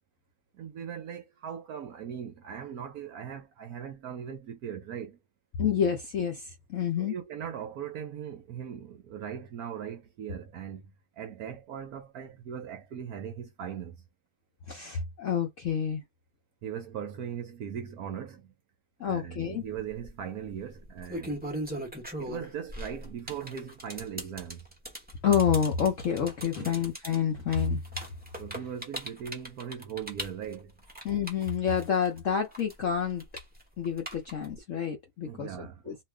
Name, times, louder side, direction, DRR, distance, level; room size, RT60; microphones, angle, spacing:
voice 1, 0.5-5.2 7.0-14.0 16.6-18.5 19.0-21.4 22.2-24.6 26.6-26.8 28.4-30.7 35.2-36.0, right 8 dB, 65° right, 0.9 m, -39 dB
voice 2, 5.6-7.1 14.7-16.0 19.0-19.6 25.2-27.8 31.0-33.2 33.8-36.0, left 7 dB, 65° left, 0.8 m, -28 dB
sound 1, 19.7-20.1 20.8-32.2 32.5-34.6, right 1 dB, 10° right, 0.4 m, -39 dB
2.9 x 2.4 x 3.3 m
omnidirectional pair, 2.0 m